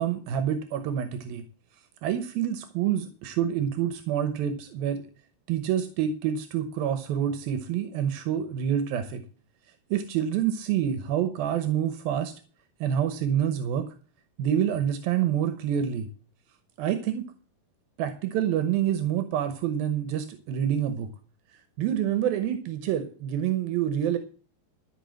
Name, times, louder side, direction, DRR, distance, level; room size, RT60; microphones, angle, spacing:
voice 1, 0.0-1.4 2.0-5.0 5.5-9.2 9.9-12.3 12.8-13.9 14.4-16.1 16.8-17.3 18.0-21.1 21.8-24.2, right 9 dB, 85° right, 10 dB, 2.9 m, -27 dB
14.0 x 5.7 x 7.7 m, 0.39 s
omnidirectional pair, 4.1 m